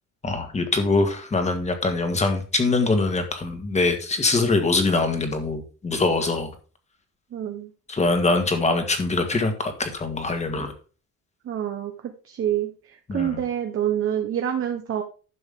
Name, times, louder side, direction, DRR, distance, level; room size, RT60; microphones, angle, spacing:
voice 1, 0.2-6.5 7.9-10.7 13.1-13.4, left 3 dB, 20° left, 6 dB, 1.7 m, -23 dB
voice 2, 7.3-7.7 11.4-15.0, right 10 dB, 45° right, 5 dB, 1.0 m, -27 dB
11.0 x 7.0 x 3.7 m, 0.37 s
cardioid pair, 165°, 31 cm